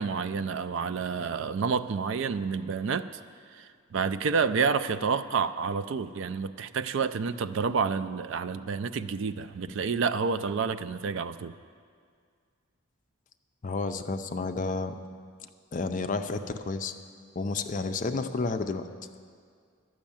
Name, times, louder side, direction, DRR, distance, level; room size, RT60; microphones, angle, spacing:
voice 1, 0.0-3.1 3.5-11.5, right 5 dB, 60° right, 12 dB, 0.4 m, -29 dB
voice 2, 13.6-15.0 15.7-16.9 17.4-18.9, left 3 dB, 40° left, 8 dB, 0.5 m, -31 dB
11.5 x 6.3 x 8.7 m, 2.1 s
head